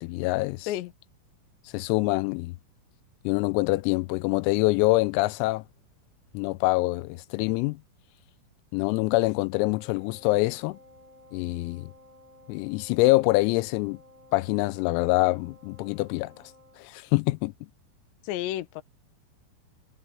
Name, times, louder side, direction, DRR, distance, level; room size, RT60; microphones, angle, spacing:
voice 1, 0.0-0.7 1.7-2.5 3.2-5.6 6.3-7.8 8.7-10.8 11.3-11.9 12.5-14.0 14.3-16.3 16.8-17.5, left 22 dB, 90° left, 3.3 m, -25 dB
Wind instrument woodwind instrument, 9.6-16.9, left 2 dB, 85° right, 8.6 m, -55 dB
voice 2, 18.2-18.8, left 13 dB, 70° left, 3.1 m, -31 dB
omnidirectional pair, 6.0 m